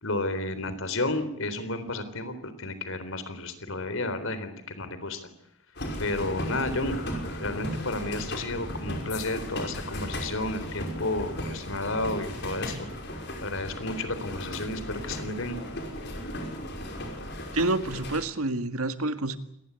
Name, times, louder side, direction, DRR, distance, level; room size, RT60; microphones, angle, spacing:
voice 1, 0.0-5.3 6.0-6.9 7.4-12.9 13.4-15.6, left 2 dB, 70° left, 12 dB, 3.9 m, -32 dB
sound 1, 5.8-18.2, left 1 dB, 50° left, 5.6 m, -36 dB
voice 2, 17.5-19.4, right 2 dB, 85° right, 10 dB, 1.9 m, -28 dB
27.0 x 19.5 x 8.4 m, 0.75 s
head